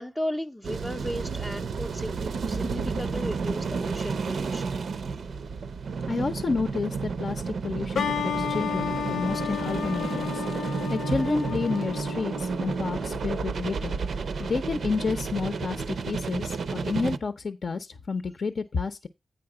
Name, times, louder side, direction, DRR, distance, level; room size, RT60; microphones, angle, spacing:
voice 1, 0.0-4.8 6.1-6.2 14.3-14.5, equal, 5° left, 0.5 m, -35 dB
sound 1, 0.6-17.2, right 5 dB, 70° right, 0.5 m, -31 dB
voice 2, 6.1-14.0 14.4-19.1, left 4 dB, 50° left, 0.6 m, -30 dB
sound 2, 7.9-13.4, left 8 dB, 85° left, 0.8 m, -33 dB
8.8 x 5.0 x 4.9 m
wide cardioid pair, 115°, 0 cm